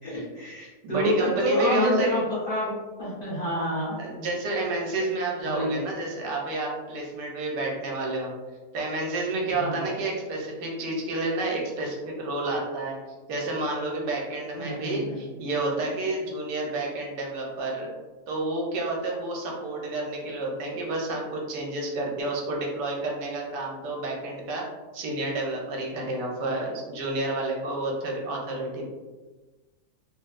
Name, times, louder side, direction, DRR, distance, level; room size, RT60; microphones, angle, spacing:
voice 1, 0.0-4.0 5.4-5.8 9.5-9.8 14.5-15.2, equal, 40° left, -10 dB, 0.9 m, -28 dB
voice 2, 0.8-2.1 4.0-8.3 8.7-13.0 13.3-17.9 18.3-24.6 24.9-28.8, right 2 dB, 85° right, -2 dB, 1.3 m, -30 dB
3.2 x 2.6 x 2.4 m, 1.3 s
omnidirectional pair, 1.8 m